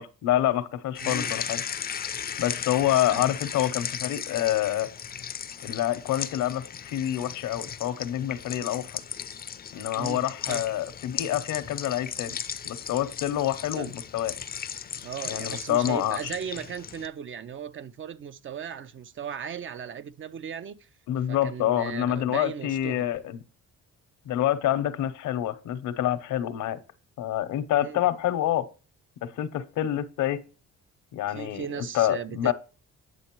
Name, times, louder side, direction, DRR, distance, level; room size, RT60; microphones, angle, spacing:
voice 1, 0.0-1.6 2.4-4.9 5.6-9.0 9.7-12.4 12.7-14.3 15.3-16.3 21.1-23.4 24.3-26.8 27.2-28.7 29.2-30.4 31.1-31.7 31.9-32.5, left 12 dB, 80° left, 0.8 m, -27 dB
sound 1, 0.9-17.1, left 8 dB, 30° left, 0.4 m, -36 dB
voice 2, 1.0-1.4 3.0-3.3 9.9-10.6 13.8-13.9 15.0-20.9 21.3-23.1 27.8-28.0 31.3-32.5, right 8 dB, 45° right, 0.5 m, -37 dB
9.1 x 6.3 x 3.0 m
cardioid pair, 90°, 30 cm